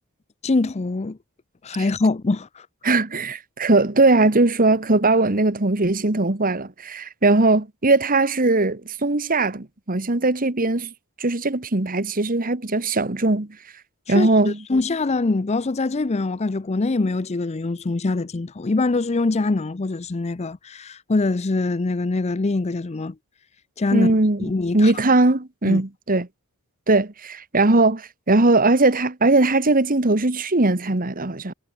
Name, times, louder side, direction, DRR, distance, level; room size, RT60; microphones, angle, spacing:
voice 1, 0.4-1.2 1.6-2.7 14.1-23.1 23.8-24.1 24.4-24.9 25.7-25.8, left 3 dB, 30° left, 0.5 m, -23 dB
voice 2, 2.8-10.9 11.2-13.5 14.1-14.6 23.9-26.3 26.9-31.5, right 2 dB, 40° right, 1.5 m, -19 dB
head